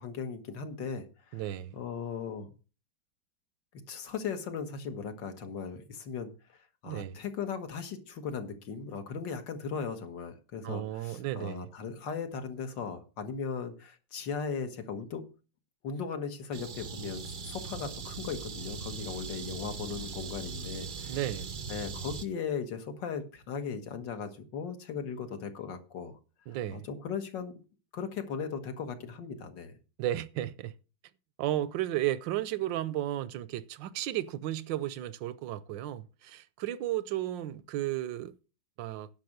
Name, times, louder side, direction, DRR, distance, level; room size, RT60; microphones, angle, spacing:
voice 1, 0.0-1.4 1.7-2.5 3.9-15.2 15.8-21.2 21.7-26.2 26.7-27.6 27.9-29.7, left 6 dB, 70° left, 2.1 m, -38 dB
voice 2, 1.3-1.7 6.8-7.2 10.6-11.7 21.1-21.5 26.5-26.9 30.0-30.7 31.4-38.3 38.8-39.1, right 13 dB, 80° right, 1.3 m, -34 dB
sound 1, 16.5-22.3, right 4 dB, 60° right, 0.5 m, -40 dB
10.5 x 5.9 x 6.5 m
omnidirectional pair, 2.0 m